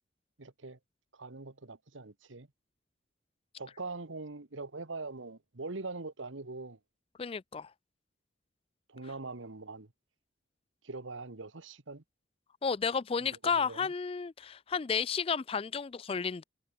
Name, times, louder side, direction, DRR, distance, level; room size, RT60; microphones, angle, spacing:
voice 1, 0.4-0.8 1.1-2.5 3.6-6.8 8.9-9.9 10.8-12.0 13.2-13.9, right 3 dB, 85° right, 1.5 m, -42 dB
voice 2, 7.2-7.7 12.6-16.4, left 6 dB, 30° left, 0.4 m, -32 dB
head